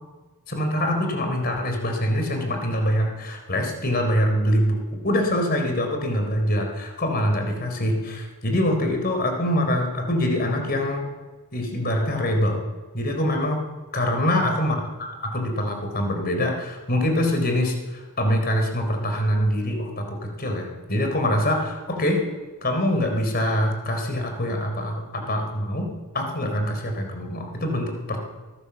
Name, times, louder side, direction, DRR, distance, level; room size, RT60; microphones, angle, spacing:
voice 1, 0.5-11.0 11.5-12.6 12.9-13.6 13.9-22.2 22.6-25.9 26.1-28.2, left 1 dB, 45° left, 4 dB, 4.2 m, -24 dB
23.0 x 17.0 x 7.2 m, 1.3 s
head